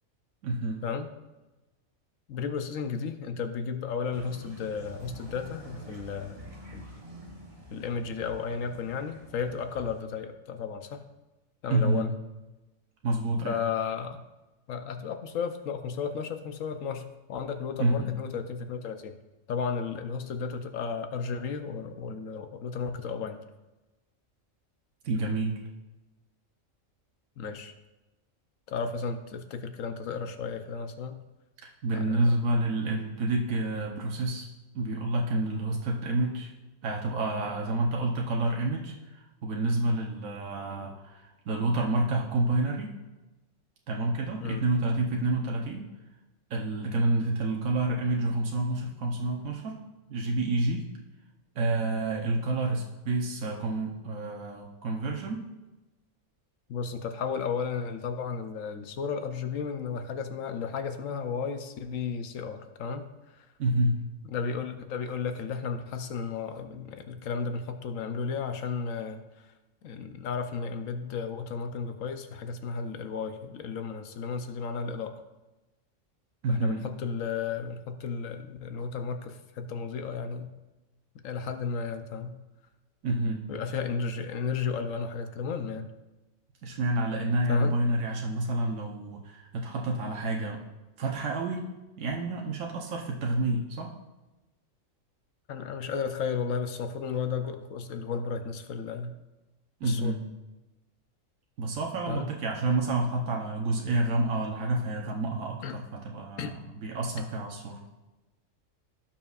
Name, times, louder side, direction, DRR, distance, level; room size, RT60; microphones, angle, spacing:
voice 1, 0.4-0.8 11.7-12.1 13.0-13.6 17.8-18.1 25.0-25.5 31.8-34.5 34.7-36.5 36.8-43.0 43.9-45.9 46.5-49.8 50.1-50.9 51.5-55.5 63.6-64.0 76.4-76.8 83.0-83.4 86.6-90.6 91.0-91.7 92.0-93.9 99.8-100.2 101.6-107.8, right 2 dB, 85° right, 0 dB, 1.3 m, -29 dB
voice 2, 2.3-6.9 7.7-11.0 11.6-12.1 13.4-14.2 14.7-19.2 19.5-23.4 27.4-27.7 28.7-31.2 31.9-32.3 44.4-44.6 56.7-63.4 64.3-69.5 69.8-75.1 76.5-80.5 81.2-82.4 83.5-85.9 87.5-87.8 95.5-99.1 99.8-100.2 102.1-102.3 105.6-105.8 106.4-106.5, left 5 dB, 80° left, 7 dB, 1.1 m, -34 dB
sound 1, 4.1-10.0, right 1 dB, 30° right, 1.2 m, -47 dB
16.5 x 5.9 x 2.4 m, 1.1 s
omnidirectional pair, 1.4 m